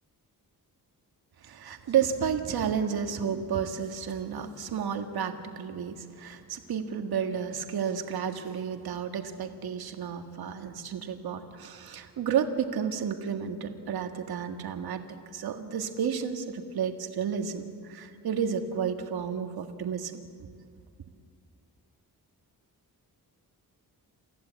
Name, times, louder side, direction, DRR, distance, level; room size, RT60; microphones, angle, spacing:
voice 1, 1.4-15.0 15.3-20.2, right 7 dB, 70° right, 5 dB, 1.8 m, -31 dB
28.5 x 15.0 x 8.2 m, 2.2 s
wide cardioid pair, 135°, 38 cm